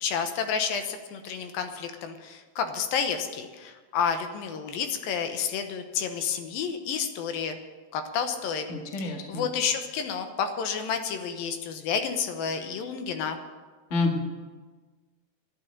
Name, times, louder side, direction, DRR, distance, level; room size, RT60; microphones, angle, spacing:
voice 1, 0.0-7.6 7.9-8.7 9.0-13.4, left 6 dB, 75° left, 7 dB, 2.7 m, -30 dB
voice 2, 8.7-9.5 13.9-14.2, left 3 dB, 60° left, 2 dB, 0.7 m, -28 dB
12.0 x 9.7 x 8.6 m, 1.4 s
omnidirectional pair, 4.3 m